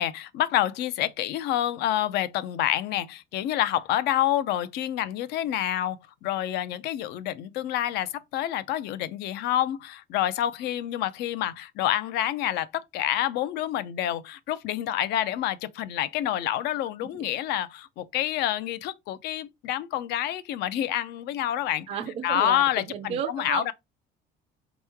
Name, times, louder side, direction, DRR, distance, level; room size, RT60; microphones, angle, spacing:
voice 1, 0.0-21.9 22.2-23.7, left 12 dB, 60° left, 0.5 m, -28 dB
voice 2, 21.9-23.7, right 9 dB, 35° right, 0.4 m, -33 dB
4.5 x 3.0 x 3.4 m
cardioid pair, 175°, 19 cm